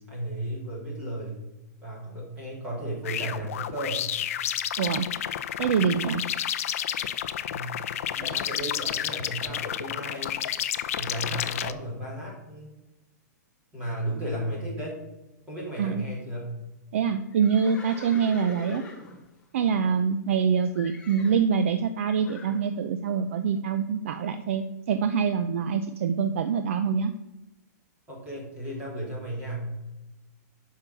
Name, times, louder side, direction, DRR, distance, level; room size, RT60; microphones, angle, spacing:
voice 1, 0.0-1.4 1.8-4.1 7.4-7.8 8.2-10.4 10.9-12.7 13.7-15.0 15.5-16.5 28.1-29.7, right 1 dB, 15° right, -5 dB, 3.3 m, -34 dB
sound 1, 3.0-11.7, left 10 dB, 50° left, 0.5 m, -31 dB
voice 2, 5.6-6.2 15.8-16.0 16.9-18.8 19.5-27.1, right 6 dB, 45° right, 9 dB, 0.5 m, -25 dB
Livestock farm animals working animals, 17.3-20.4 20.7-21.4 22.2-22.6, left 3 dB, 10° left, 0.9 m, -45 dB
8.2 x 5.6 x 6.8 m, 0.99 s
hypercardioid pair, 175°, 9 cm